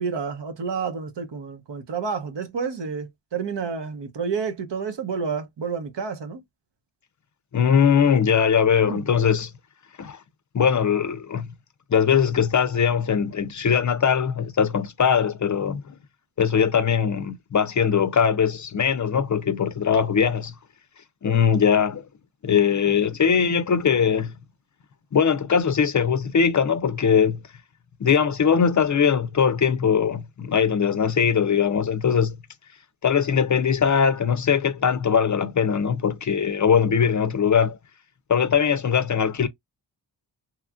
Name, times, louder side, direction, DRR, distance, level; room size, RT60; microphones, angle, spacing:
voice 1, 0.0-6.4 8.9-9.0, right 5 dB, 65° right, 0.9 m, -29 dB
voice 2, 7.5-9.5 10.0-10.2 10.5-11.5 11.9-15.8 16.4-20.5 21.2-22.0 22.4-24.3 25.1-27.4 28.0-32.4 33.0-37.8 38.3-39.5, left 7 dB, 40° left, 0.5 m, -21 dB
3.1 x 2.4 x 2.2 m
cardioid pair, 55°, 46 cm